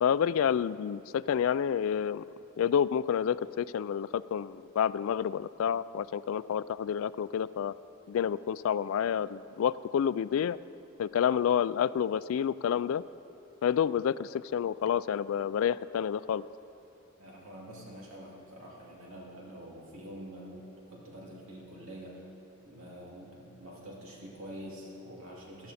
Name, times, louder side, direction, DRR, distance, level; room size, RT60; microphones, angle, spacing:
voice 1, 0.0-2.2 2.6-7.7 8.1-10.6 11.0-13.0 13.6-16.5, left 8 dB, 70° left, 18 dB, 0.3 m, -29 dB
voice 2, 17.2-22.3 22.6-25.7, equal, 80° right, -4 dB, 2.6 m, -46 dB
14.5 x 12.0 x 4.2 m, 2.8 s
head